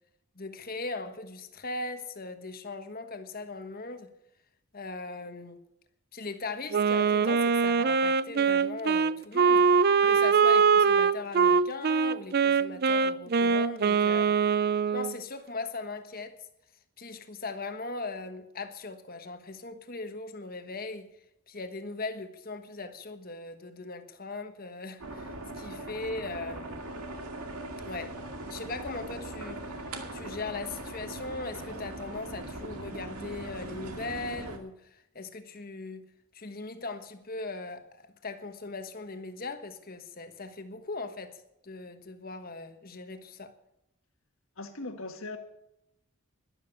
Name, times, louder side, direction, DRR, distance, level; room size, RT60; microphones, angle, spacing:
voice 1, 0.3-4.1 4.7-5.6 6.1-9.7 10.1-14.3 14.9-16.4 17.0-21.1 21.5-26.9 27.8-28.2 28.5-36.1 36.3-43.5, left 3 dB, 40° left, 1.3 m, -39 dB
Wind instrument woodwind instrument, 6.7-15.1, right 5 dB, 45° right, 0.4 m, -23 dB
sound 1, 25.0-34.6, right 1 dB, 85° right, 2.2 m, -40 dB
voice 2, 44.6-45.4, left 2 dB, 65° left, 1.8 m, -39 dB
12.0 x 11.5 x 7.0 m
head